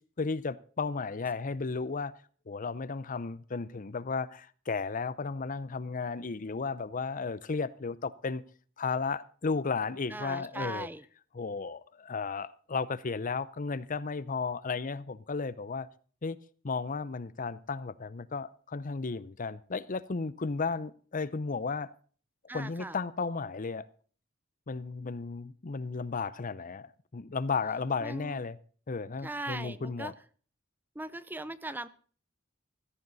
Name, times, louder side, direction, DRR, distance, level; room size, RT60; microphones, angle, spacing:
voice 1, 0.2-2.1 2.5-8.4 8.8-10.9 11.3-15.9 16.2-16.4 16.6-21.9 22.5-23.9 24.7-28.6 28.9-30.1, left 4 dB, 40° left, 0.6 m, -34 dB
voice 2, 10.1-11.0 22.5-23.0 28.0-28.4 29.2-30.1 31.0-31.9, right 2 dB, 10° right, 0.5 m, -39 dB
16.0 x 13.5 x 4.1 m
head